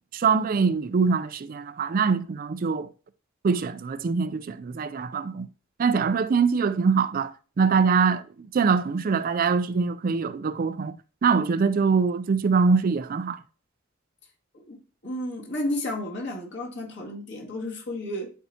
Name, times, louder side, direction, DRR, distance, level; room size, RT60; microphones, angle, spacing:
voice 1, 0.1-2.9 3.4-5.5 5.8-11.0 11.2-13.4, right 5 dB, 45° right, 0.4 m, -23 dB
voice 2, 15.0-18.3, left 1 dB, 60° left, 2.1 m, -32 dB
10.5 x 4.5 x 2.8 m
head